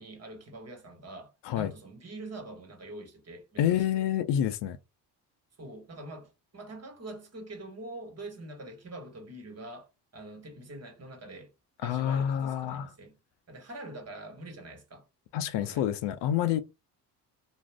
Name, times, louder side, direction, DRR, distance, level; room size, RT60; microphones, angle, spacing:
voice 1, 0.0-3.8 5.6-11.5 11.8-13.2 13.5-15.1 15.6-15.9, right 2 dB, 35° right, 1.1 m, -44 dB
voice 2, 3.6-4.8 11.8-12.9 15.3-16.6, left 10 dB, 65° left, 0.6 m, -28 dB
2.4 x 2.0 x 3.3 m
supercardioid pair, 65°, 45 cm